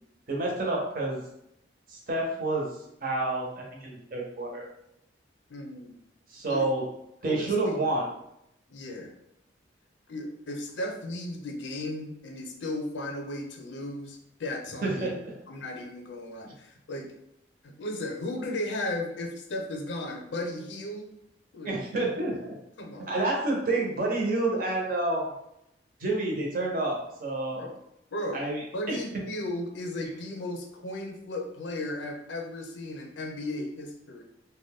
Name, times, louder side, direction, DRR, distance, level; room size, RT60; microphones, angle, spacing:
voice 1, 0.3-1.2 1.9-2.8 3.0-4.7 6.3-6.8 7.2-8.1 14.8-15.3 21.6-22.6 23.1-25.3 26.0-27.7 28.3-29.0, right 2 dB, 50° right, -1 dB, 0.7 m, -29 dB
voice 2, 5.5-5.9 6.5-6.7 7.2-7.8 8.7-9.1 10.1-15.2 15.5-17.1 17.6-21.1 21.5-21.8 22.8-23.1 27.5-27.7 28.1-28.4 28.7-34.2, left 1 dB, 80° left, 3 dB, 0.5 m, -35 dB
2.5 x 2.2 x 3.4 m, 0.79 s
head